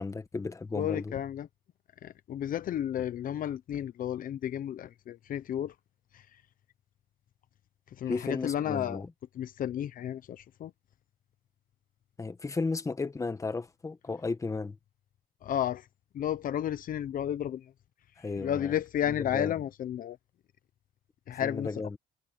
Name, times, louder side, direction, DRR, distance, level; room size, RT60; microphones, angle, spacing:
voice 1, 0.0-1.1 8.1-9.1 12.2-14.8 18.2-18.7 19.3-19.5 21.4-22.0, left 3 dB, 20° left, 1.5 m, -34 dB
voice 2, 0.7-1.5 2.0-5.7 6.1-6.3 8.0-9.0 9.3-10.7 15.4-15.9 16.1-17.7 18.3-20.2 21.3-21.7, left 10 dB, 55° left, 1.0 m, -32 dB
cardioid pair, 110°, 17 cm